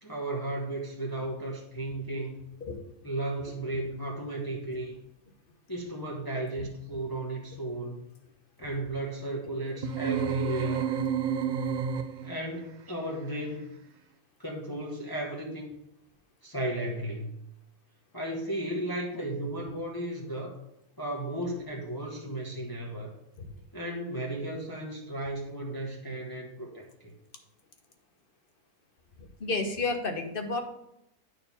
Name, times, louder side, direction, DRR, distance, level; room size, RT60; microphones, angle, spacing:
voice 1, 0.0-2.5 3.0-5.0 5.7-8.0 8.6-10.9 12.2-13.6 14.4-15.7 16.4-17.4 18.1-20.6 21.0-23.1 23.7-27.1, right 1 dB, 15° left, -1 dB, 1.1 m, -34 dB
sound 1, 9.8-12.5, right 7 dB, 70° right, 0.4 m, -30 dB
voice 2, 29.4-30.6, left 3 dB, 40° left, 5 dB, 1.2 m, -30 dB
9.2 x 4.4 x 5.5 m, 0.82 s
omnidirectional pair, 1.6 m